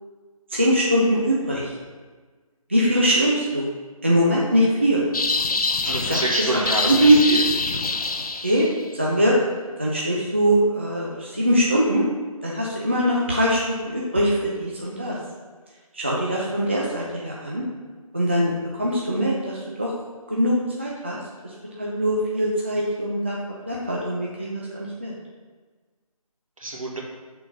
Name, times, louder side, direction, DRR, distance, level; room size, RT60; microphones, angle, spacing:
voice 1, 0.5-1.7 2.7-3.7 4.0-5.0 5.9-6.2 6.5-7.2 8.4-8.7 9.0-9.3 9.8-12.0 12.4-15.2 15.9-17.6 18.1-18.5 18.8-19.9 20.3-21.2 21.8-23.4 23.7-25.1, right 1 dB, 20° right, -4 dB, 0.4 m, -22 dB
sound 1, 5.1-8.8, left 3 dB, 85° left, 0.5 m, -25 dB
voice 2, 5.8-7.4 26.6-27.0, right 1 dB, 65° right, -2 dB, 1.5 m, -27 dB
6.1 x 3.8 x 5.4 m, 1.4 s
figure-of-eight pair, 155°, 19 cm